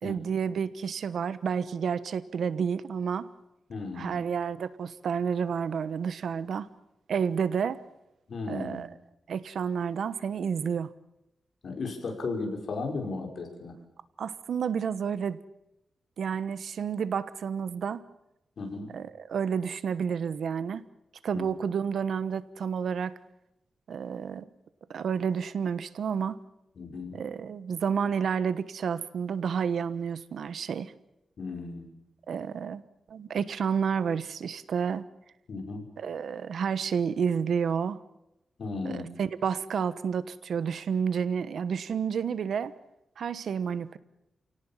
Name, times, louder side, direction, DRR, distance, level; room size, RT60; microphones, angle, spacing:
voice 1, 0.0-3.3 3.9-6.7 7.1-7.8 8.5-8.9 9.3-10.9 14.2-15.4 16.2-18.0 18.9-20.8 21.2-23.1 23.9-24.5 24.9-26.4 27.1-30.9 32.3-32.8 33.1-35.1 36.0-38.0 38.8-42.7 43.2-44.0, right 7 dB, 75° right, 15 dB, 1.1 m, -30 dB
voice 2, 3.7-4.1 8.3-8.9 11.6-13.7 18.6-18.9 21.3-21.5 26.8-27.2 31.4-31.9 35.5-35.9 38.6-39.1, left 3 dB, 60° left, 3 dB, 5.5 m, -35 dB
29.5 x 18.0 x 7.4 m, 0.89 s
wide cardioid pair, 135°, 0 cm